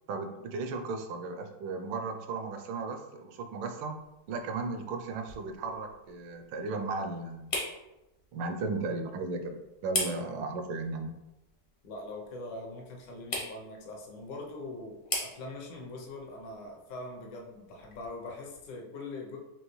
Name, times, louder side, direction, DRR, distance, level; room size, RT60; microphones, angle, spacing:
voice 1, 0.1-4.0 4.3-7.6 8.3-9.6 9.8-11.1, right 3 dB, 75° right, 6 dB, 1.3 m, -35 dB
sound 1, 4.0-18.7, left 1 dB, 45° left, 0.7 m, -42 dB
voice 2, 11.8-19.4, left 2 dB, 65° left, 0 dB, 1.4 m, -42 dB
5.3 x 2.8 x 3.0 m, 0.97 s
omnidirectional pair, 2.3 m